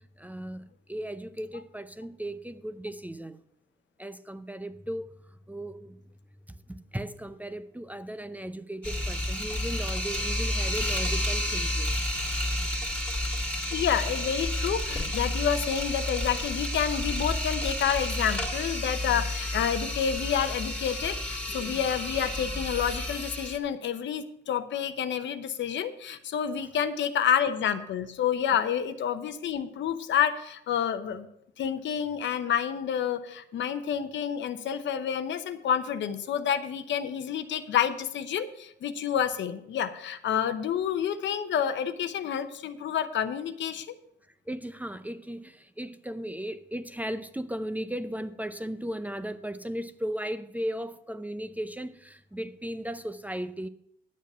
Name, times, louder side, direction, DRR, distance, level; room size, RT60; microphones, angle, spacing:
voice 1, 0.0-3.4 4.0-5.1 5.5-6.0 6.7-12.0 21.5-21.7 44.5-53.7, right 1 dB, 10° right, 11 dB, 0.6 m, -36 dB
sound 1, 8.8-23.6, left 1 dB, 10° left, 2.3 m, -31 dB
voice 2, 13.7-31.3 31.6-43.9, left 8 dB, 70° left, 10 dB, 0.8 m, -29 dB
10.5 x 7.3 x 5.6 m, 0.75 s
cardioid pair, 90°, 20 cm